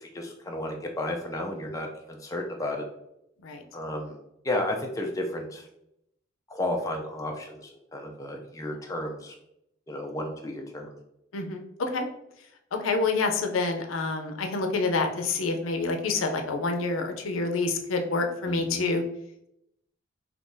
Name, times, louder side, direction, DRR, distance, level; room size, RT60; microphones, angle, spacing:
voice 1, 0.0-2.8 3.7-4.2 4.4-5.7 6.5-9.3 9.9-11.0 18.5-18.9, left 1 dB, 15° left, 1 dB, 0.3 m, -33 dB
voice 2, 11.3-12.1 12.8-19.0, left 3 dB, 80° left, 4 dB, 0.5 m, -27 dB
3.7 x 2.8 x 2.6 m, 0.80 s
head